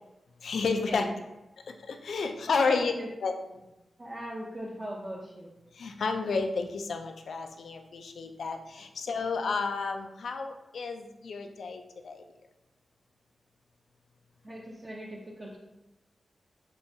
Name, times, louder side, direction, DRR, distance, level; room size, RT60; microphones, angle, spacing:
voice 1, 0.4-1.1 1.6-2.9 3.2-3.3 5.7-12.2, left 4 dB, 85° left, 5 dB, 0.4 m, -31 dB
voice 2, 2.6-3.1 4.0-5.5 9.1-9.2 14.4-15.6, right 1 dB, 30° right, -3 dB, 0.5 m, -40 dB
5.2 x 2.3 x 2.6 m, 0.95 s
wide cardioid pair, 85°, 0 cm